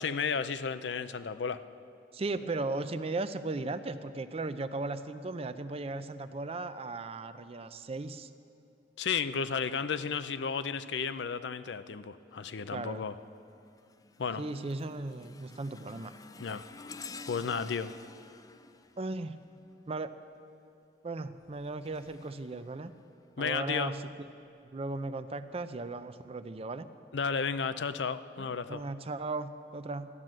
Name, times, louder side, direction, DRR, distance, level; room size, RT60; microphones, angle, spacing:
voice 1, 0.0-1.6 9.0-13.2 14.2-14.5 16.4-16.6 17.3-17.9 23.4-23.9 27.1-28.8, left 6 dB, 85° left, 12 dB, 0.5 m, -33 dB
voice 2, 2.1-8.3 12.7-13.0 14.4-16.1 19.0-19.4 19.9-20.1 21.0-22.9 23.4-24.3 24.7-26.9 28.4-30.1, right 3 dB, 35° right, 11 dB, 0.5 m, -37 dB
sound 1, 12.3-12.7 13.2-20.0 21.3-23.5 24.1-24.3 25.2-25.3, left 4 dB, 20° left, 0.4 m, -51 dB
13.5 x 11.0 x 7.6 m, 2.6 s
head